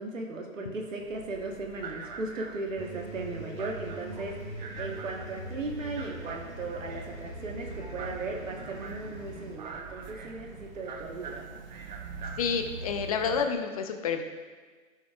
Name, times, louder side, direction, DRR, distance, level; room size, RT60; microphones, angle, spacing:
voice 1, 0.0-11.5, right 3 dB, 70° right, 1 dB, 1.3 m, -37 dB
sound 1, 1.0-13.5, right 4 dB, 35° right, 0.6 m, -43 dB
sound 2, 2.7-9.5, equal, 15° right, 2.4 m, -42 dB
voice 2, 12.4-14.2, left 6 dB, 30° left, 6 dB, 0.5 m, -29 dB
15.0 x 6.3 x 2.4 m, 1.5 s
figure-of-eight pair, 130°, 41 cm